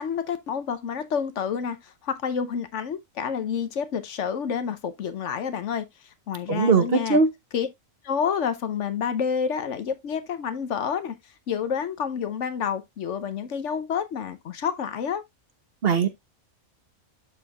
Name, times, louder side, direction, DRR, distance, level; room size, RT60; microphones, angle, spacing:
voice 1, 0.0-5.9 6.3-7.2 7.5-7.7 8.0-11.2 11.5-15.2, left 7 dB, 65° left, 1.1 m, -29 dB
voice 2, 6.5-7.3 15.8-16.1, right 5 dB, 50° right, 1.1 m, -20 dB
12.0 x 4.4 x 2.3 m
omnidirectional pair, 1.4 m